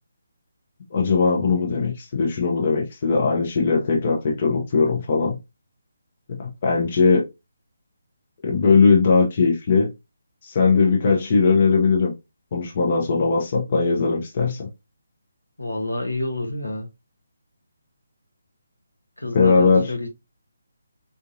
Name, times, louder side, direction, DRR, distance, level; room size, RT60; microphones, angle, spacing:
voice 1, 0.9-5.4 6.4-7.2 8.4-9.9 10.4-12.1 12.5-14.7 19.3-19.9, left 4 dB, 40° left, 0.8 m, -19 dB
voice 2, 15.6-16.9 19.2-20.1, left 1 dB, 85° left, 1.0 m, -28 dB
3.7 x 2.6 x 2.6 m
figure-of-eight pair, 145°, 0 cm